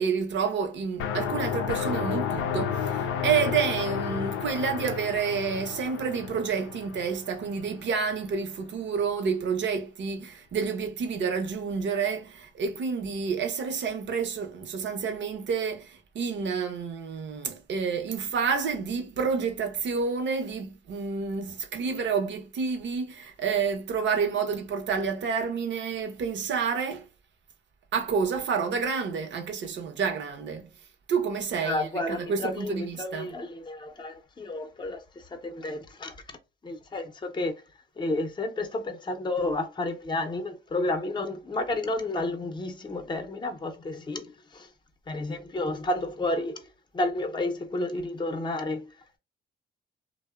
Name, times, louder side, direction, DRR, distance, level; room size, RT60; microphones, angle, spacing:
voice 1, 0.0-27.1 27.9-30.7 31.1-33.3, right 6 dB, 65° right, 0.7 m, -29 dB
sound 1, 1.0-7.7, left 7 dB, 85° left, 0.4 m, -31 dB
voice 2, 31.6-36.2 36.6-37.6 38.0-44.7 45.1-46.6 46.9-48.9, left 2 dB, 20° left, 0.6 m, -31 dB
2.7 x 2.0 x 2.3 m
cardioid pair, 80°, 21 cm